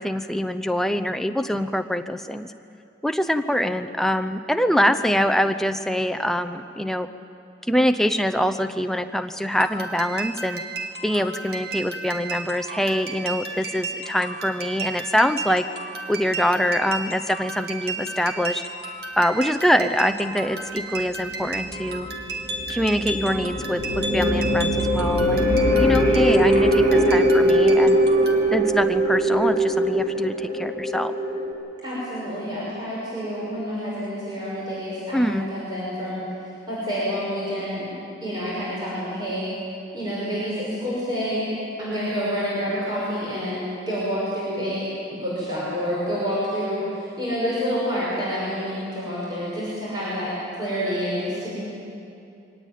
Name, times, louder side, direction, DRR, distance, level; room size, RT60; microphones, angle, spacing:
voice 1, 0.0-2.5 3.0-7.1 7.7-10.6 11.0-15.6 16.1-18.6 19.2-22.1 22.7-25.4 25.8-28.0 28.5-31.1 35.1-35.5, equal, ahead, 8 dB, 0.7 m, -24 dB
sound 1, 9.5-28.4, right 3 dB, 60° right, 2.1 m, -34 dB
sound 2, 21.2-31.5, equal, 40° right, 7.4 m, -21 dB
voice 2, 31.8-36.2 36.7-37.9 38.2-39.5 39.9-41.4 41.8-51.6, equal, 25° right, -8 dB, 6.0 m, -28 dB
23.5 x 18.5 x 9.2 m, 2.6 s
head